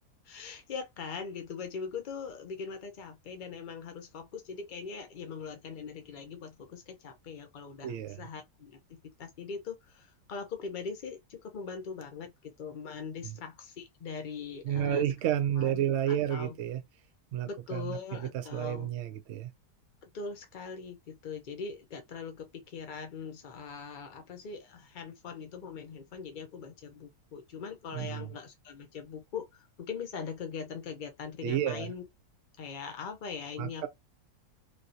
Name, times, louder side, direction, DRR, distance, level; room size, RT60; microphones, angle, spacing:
voice 1, 0.2-15.1 15.6-16.6 17.4-18.9 20.1-32.0 32.6-33.9, left 5 dB, 90° left, 0.4 m, -41 dB
voice 2, 7.8-8.2 13.2-13.3 14.6-16.8 17.3-19.5 27.9-28.3 31.4-31.9 33.6-33.9, right 10 dB, 65° right, 0.8 m, -31 dB
3.1 x 2.6 x 2.7 m
omnidirectional pair, 1.6 m